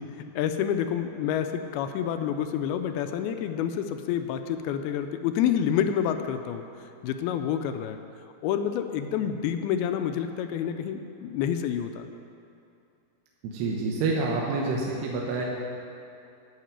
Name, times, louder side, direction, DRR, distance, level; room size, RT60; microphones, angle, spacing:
voice 1, 0.0-6.7 7.0-8.0 8.4-12.1, left 9 dB, 80° left, 8 dB, 2.4 m, -28 dB
voice 2, 13.4-15.5, right 3 dB, 90° right, -3 dB, 3.1 m, -28 dB
11.5 x 5.9 x 8.8 m, 2.6 s
omnidirectional pair, 4.6 m